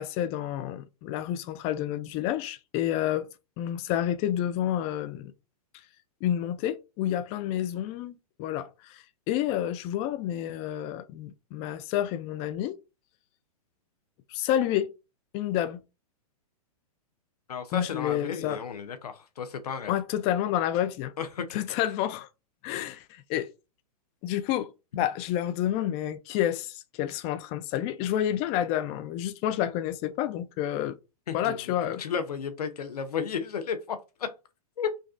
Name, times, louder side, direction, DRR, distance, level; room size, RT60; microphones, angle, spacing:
voice 1, 0.0-3.3 3.6-5.3 6.2-12.8 14.3-14.9 15.3-15.8 17.7-18.6 19.9-21.1 21.5-22.3 22.6-23.5 24.2-31.0 31.3-32.0, left 11 dB, 30° left, 0.4 m, -29 dB
voice 2, 17.5-19.9 21.2-21.6 31.3-34.3 34.8-34.9, left 6 dB, 85° left, 0.6 m, -33 dB
5.1 x 2.3 x 2.4 m
hypercardioid pair, 120°, 20 cm